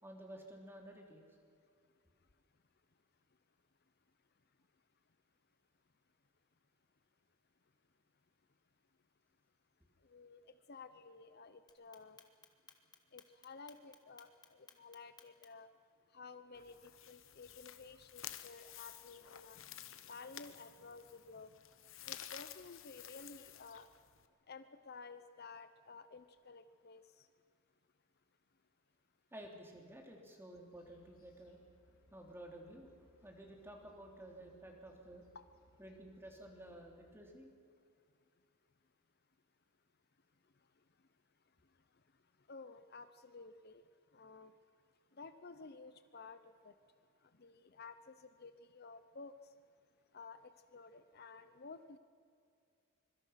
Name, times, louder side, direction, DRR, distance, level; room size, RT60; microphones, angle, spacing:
voice 1, 0.0-1.2 29.3-31.6 32.1-35.2 35.8-37.5, right 1 dB, 10° right, 1 dB, 3.3 m, -53 dB
voice 2, 10.0-10.4 10.7-12.2 13.1-15.7 16.1-19.6 20.1-21.5 22.1-23.9 24.5-27.3 42.5-43.8 44.1-44.5 45.2-46.7 47.4-49.3 50.1-52.0, left 4 dB, 50° left, 11 dB, 0.8 m, -53 dB
Clock, 11.7-15.7, left 6 dB, 20° left, 1.6 m, -60 dB
sound 1, 16.5-24.3, left 11 dB, 65° left, 1.2 m, -52 dB
sound 2, 30.7-37.2, left 1 dB, 85° left, 3.6 m, -70 dB
25.0 x 23.5 x 5.9 m, 2.3 s
head